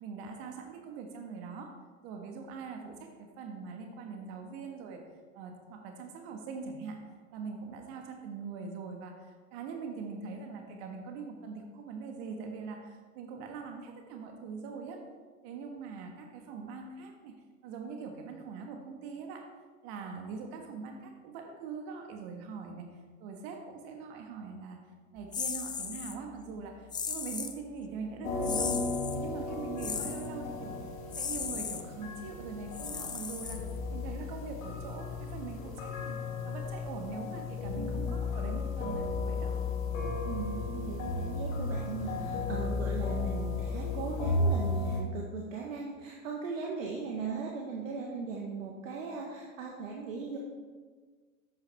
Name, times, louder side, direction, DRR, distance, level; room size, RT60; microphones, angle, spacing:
voice 1, 0.0-1.7 2.0-5.0 5.3-7.0 7.3-15.0 15.4-17.4 17.6-19.5 19.8-22.9 23.2-24.8 25.1-28.8 29.1-30.8 31.1-36.2 36.4-39.5, right 5 dB, 45° right, 3 dB, 1.6 m, -42 dB
sound 1, 25.3-26.2 26.9-27.6 28.4-29.2 29.8-30.3 31.1-31.8 32.7-33.9, left 6 dB, 10° left, 0.5 m, -36 dB
sound 2, 28.2-45.0, left 3 dB, 70° left, 2.0 m, -34 dB
voice 2, 37.7-38.1 40.2-50.4, right 5 dB, 65° right, -1 dB, 1.5 m, -38 dB
12.5 x 8.7 x 3.4 m, 1.5 s
figure-of-eight pair, 90°, 41 cm